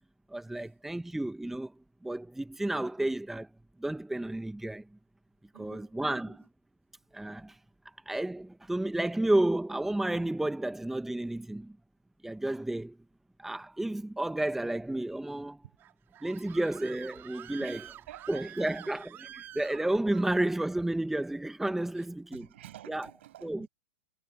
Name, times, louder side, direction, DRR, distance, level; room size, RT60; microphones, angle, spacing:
voice 1, 0.3-1.7 2.0-3.5 3.8-4.9 5.5-6.4 7.1-7.6 8.0-11.8 12.2-13.0 13.4-15.6 16.2-17.9 18.3-22.5 22.9-23.1 23.4-23.7, right 1 dB, 5° right, 1.3 m, -31 dB
voice 2, 5.5-6.4 17.6-18.9 20.1-20.2 21.9-22.1 22.3-23.7, right 13 dB, 60° right, 7.8 m, -51 dB
Screaming, 15.8-20.3, right 12 dB, 30° right, 3.0 m, -48 dB
figure-of-eight pair, 100°, 7 cm